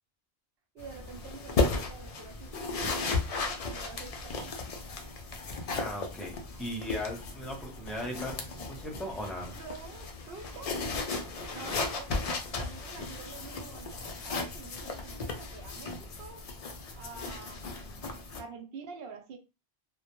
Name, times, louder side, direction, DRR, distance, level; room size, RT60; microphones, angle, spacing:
voice 1, 0.7-3.2 3.7-4.6 9.5-10.8 11.5-16.5 16.9-19.4, right 5 dB, 75° right, 0.8 m, -47 dB
sound 1, 0.8-18.4, left 3 dB, 55° left, 0.4 m, -35 dB
voice 2, 5.7-9.6, left 1 dB, ahead, 0.5 m, -38 dB
2.1 x 2.1 x 2.9 m
omnidirectional pair, 1.0 m